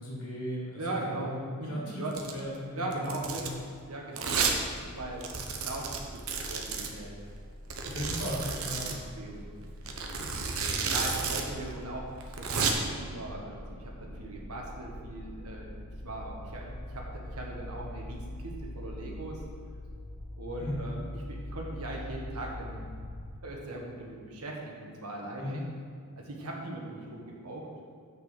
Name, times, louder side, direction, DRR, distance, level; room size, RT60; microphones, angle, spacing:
voice 1, 0.0-0.8 1.1-1.3 1.6-3.5 7.8-8.9 20.6-20.9 25.4-25.6, equal, 90° left, -5 dB, 2.2 m, -37 dB
voice 2, 0.8-1.3 1.6-2.1 2.7-3.5 3.9-4.3 4.9-5.3 5.6-7.1 7.7-8.2 8.8-9.7 10.9-19.4 20.4-22.8 23.4-25.6 26.2-27.7, right 2 dB, 85° right, -1 dB, 1.6 m, -39 dB
Domestic sounds home sounds, 2.1-2.4 2.9-3.6 4.2-4.6 4.9-5.0 5.2-6.9 7.7-9.0 9.9-11.4 11.7-11.8 12.2-12.7, right 5 dB, 65° right, 0.9 m, -31 dB
sound 1, 4.5-23.3, left 1 dB, 70° left, 1.2 m, -44 dB
6.5 x 5.4 x 6.7 m, 2.2 s
head